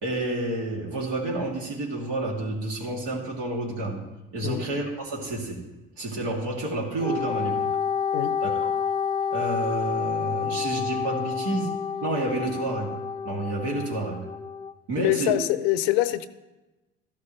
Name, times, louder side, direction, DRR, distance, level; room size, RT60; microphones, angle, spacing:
voice 1, 0.0-4.0 4.3-5.6 6.0-7.6 8.4-8.7 9.3-11.7 12.0-12.9 13.2-14.2 14.9-15.3, right 2 dB, 75° right, -2 dB, 2.7 m, -29 dB
Wind instrument woodwind instrument, 7.0-14.7, left 7 dB, 15° left, 0.4 m, -29 dB
voice 2, 15.0-16.3, left 14 dB, 80° left, 14 dB, 0.6 m, -24 dB
13.0 x 12.0 x 3.2 m, 1.1 s
hypercardioid pair, 70°, 30 cm